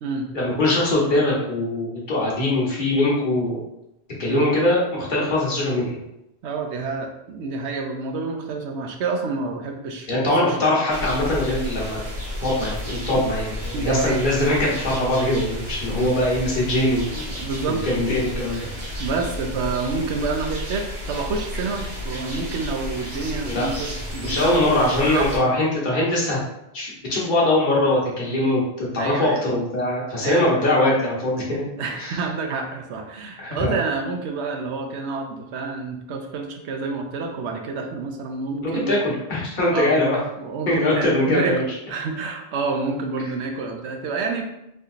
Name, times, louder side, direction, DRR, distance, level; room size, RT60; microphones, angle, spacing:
voice 1, 0.3-3.6 4.2-6.0 10.1-12.0 12.4-17.2 17.7-19.0 23.4-23.7 24.2-26.4 26.7-31.7 32.0-32.2 33.4-33.7 38.6-40.2 40.7-41.6, left 1 dB, 50° left, -5 dB, 1.1 m, -22 dB
voice 2, 6.4-10.6 13.7-14.2 16.0-16.2 17.3-18.7 19.0-24.7 25.1-25.3 29.0-29.4 30.2-30.6 31.8-39.0 39.7-39.9 40.4-41.6 41.9-44.4, right 4 dB, 90° right, 3 dB, 0.9 m, -28 dB
sound 1, 10.9-25.4, left 1 dB, 70° right, 1.7 m, -32 dB
3.4 x 2.8 x 2.4 m, 0.83 s
omnidirectional pair, 1.1 m